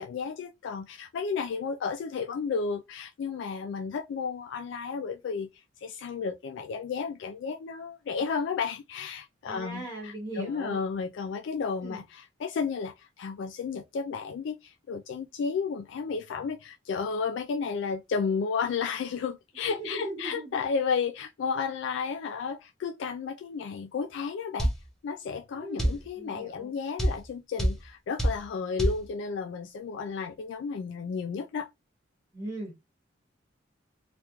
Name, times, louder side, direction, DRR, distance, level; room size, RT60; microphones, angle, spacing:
voice 1, 0.0-5.5 5.8-24.7 25.0-31.7, left 5 dB, 65° left, 0.3 m, -32 dB
voice 2, 9.5-10.8 11.8-12.0 19.8-20.6 25.5-26.7 32.3-32.8, right 1 dB, 15° right, 1.1 m, -39 dB
sound 1, 24.6-24.8 25.8-26.0 27.0-27.2 27.6-27.8 28.2-28.4 28.8-29.0, equal, 5° left, 0.7 m, -24 dB
3.3 x 2.4 x 2.9 m
head